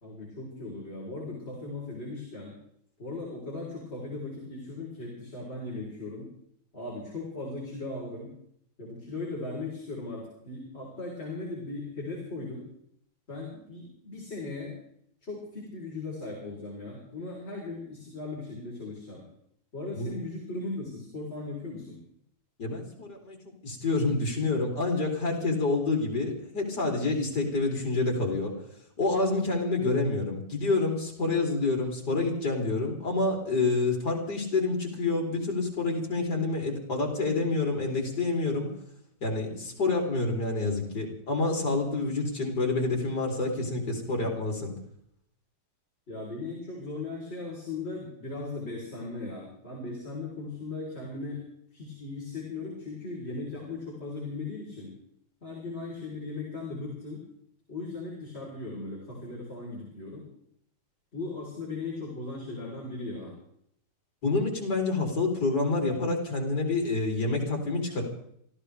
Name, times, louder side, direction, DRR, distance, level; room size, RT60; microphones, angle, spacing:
voice 1, 0.0-2.5 3.0-6.3 6.7-8.3 8.8-12.7 13.3-14.7 15.2-19.2 19.7-22.0 46.1-51.4 51.7-54.9 55.4-57.2 57.7-60.3 61.1-63.4, left 3 dB, 35° left, -3 dB, 4.2 m, -38 dB
voice 2, 22.6-23.4 23.6-28.5 29.0-38.7 39.2-44.7 64.2-68.0, left 3 dB, 60° left, 0 dB, 4.1 m, -28 dB
26.0 x 14.5 x 3.4 m, 0.70 s
omnidirectional pair, 2.1 m